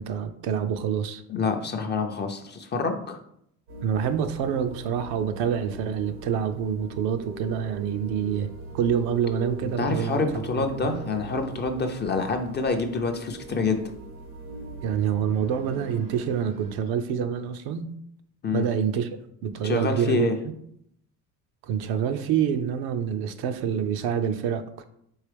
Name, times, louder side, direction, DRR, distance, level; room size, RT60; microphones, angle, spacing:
voice 1, 0.0-1.2 3.8-10.7 14.8-17.9 18.5-20.3 21.6-24.9, right 8 dB, 60° right, 8 dB, 0.6 m, -27 dB
voice 2, 1.3-3.2 9.6-13.8 18.4-18.7 19.6-20.4, left 4 dB, 25° left, 5 dB, 0.5 m, -27 dB
sound 1, 3.7-16.7, right 3 dB, 90° right, 1.3 m, -41 dB
4.6 x 3.0 x 3.3 m, 0.72 s
supercardioid pair, 85°, 42 cm